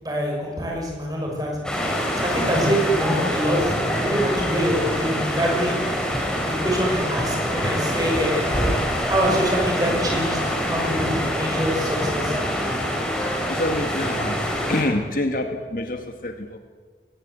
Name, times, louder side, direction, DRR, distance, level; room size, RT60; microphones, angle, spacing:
voice 1, 0.0-1.5 2.2-5.8 6.5-8.5 9.0-12.3, equal, 20° right, -1 dB, 6.3 m, -25 dB
sound 1, 1.6-14.8, equal, 5° left, 4.0 m, -25 dB
voice 2, 13.5-14.4 14.7-16.6, left 1 dB, 50° left, 6 dB, 1.7 m, -26 dB
22.0 x 19.0 x 8.2 m, 1.5 s
head